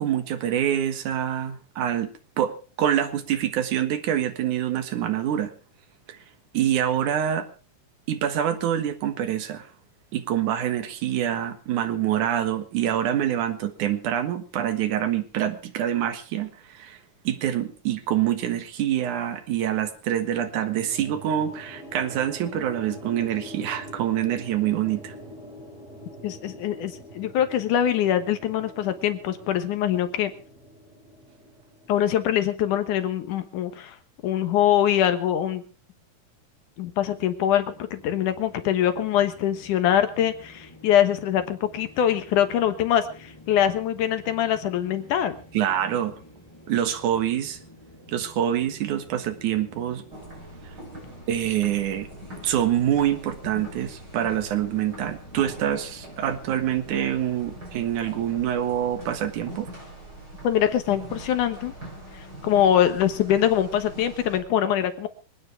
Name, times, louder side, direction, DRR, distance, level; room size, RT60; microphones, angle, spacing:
voice 1, 0.0-2.1 2.4-2.5 2.8-5.5 6.1-6.2 6.5-7.5 8.1-9.7 10.1-17.0 17.2-25.1 45.5-46.1 46.7-47.6 48.1-50.0 51.3-52.1 52.4-59.7, right 10 dB, 75° right, 8 dB, 2.9 m, -26 dB
sound 1, 20.4-32.6, equal, 25° left, 6.4 m, -44 dB
voice 2, 26.2-30.3 31.9-34.0 34.2-35.6 36.8-45.4 60.4-61.7 62.1-65.1, left 10 dB, 80° left, 10 dB, 2.8 m, -23 dB
sound 2, 37.1-57.1, left 1 dB, 10° left, 6.8 m, -50 dB
sound 3, 50.1-64.4, right 1 dB, 30° right, 7.2 m, -42 dB
25.0 x 9.6 x 4.6 m, 0.37 s
omnidirectional pair, 3.6 m